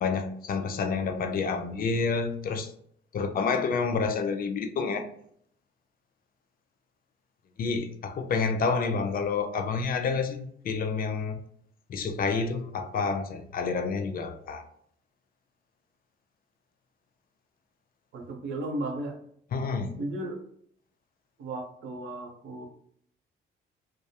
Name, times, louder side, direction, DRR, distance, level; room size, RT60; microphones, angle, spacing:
voice 1, 0.0-2.7 3.1-5.1 7.6-11.4 11.9-14.6 19.5-20.0, left 4 dB, 50° left, 7 dB, 0.4 m, -29 dB
voice 2, 18.1-19.2 20.0-20.4 21.4-22.7, right 2 dB, 70° right, 2 dB, 0.7 m, -35 dB
2.2 x 2.0 x 2.7 m, 0.66 s
cardioid pair, 90°, 20 cm